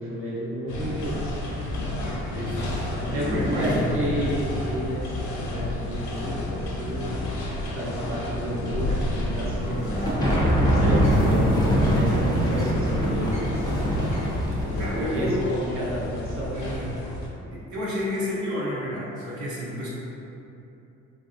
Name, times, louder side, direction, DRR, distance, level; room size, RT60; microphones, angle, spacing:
voice 1, 0.0-1.4 3.0-7.4 7.7-13.9 14.6-16.5, equal, 45° right, -7 dB, 0.8 m, -31 dB
sound 1, 0.7-17.3, left 1 dB, 70° left, 0.6 m, -31 dB
voice 2, 2.3-3.9 14.8-15.5 16.5-16.9 17.5-19.9, left 1 dB, 75° right, -8 dB, 0.8 m, -30 dB
Bird, 9.2-15.1, equal, 5° right, 0.9 m, -35 dB
sound 2, 10.0-15.1, equal, 15° left, 0.6 m, -23 dB
3.1 x 2.6 x 2.5 m, 2.8 s
cardioid pair, 90°, 30 cm